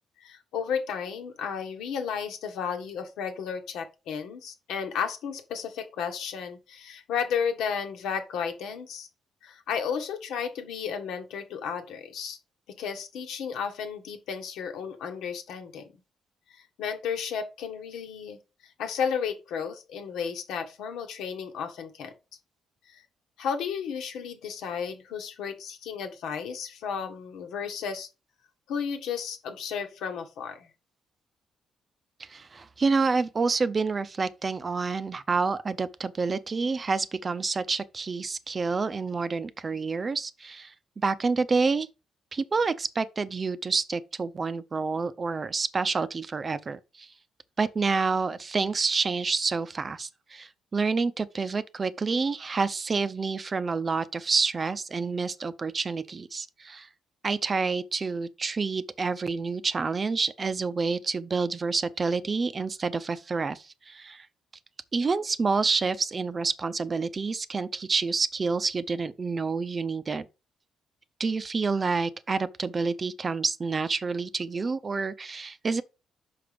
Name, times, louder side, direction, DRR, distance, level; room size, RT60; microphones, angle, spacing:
voice 1, 0.2-9.1 9.4-12.4 12.8-15.9 16.5-18.4 18.8-22.1 22.9-23.0 23.4-28.1 28.7-30.7, left 7 dB, 85° left, 1.5 m, -33 dB
voice 2, 32.2-41.9 42.3-47.1 47.6-56.9 57.2-64.3 64.9-70.2 71.2-75.8, right 4 dB, 35° right, 0.6 m, -28 dB
5.6 x 5.2 x 5.1 m
cardioid pair, 90°, 0 cm